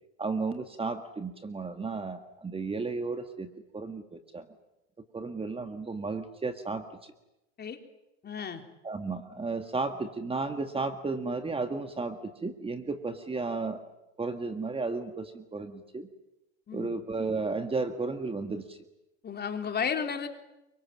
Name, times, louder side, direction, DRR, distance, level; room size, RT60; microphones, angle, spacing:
voice 1, 0.2-4.5 5.1-7.1 8.8-13.8 14.2-16.1 16.7-18.8, right 3 dB, 15° right, 8 dB, 1.9 m, -33 dB
voice 2, 8.2-8.6 16.7-16.9 19.2-20.3, left 7 dB, 30° left, 5 dB, 3.5 m, -33 dB
28.0 x 24.5 x 7.5 m, 0.93 s
supercardioid pair, 105°, 35 cm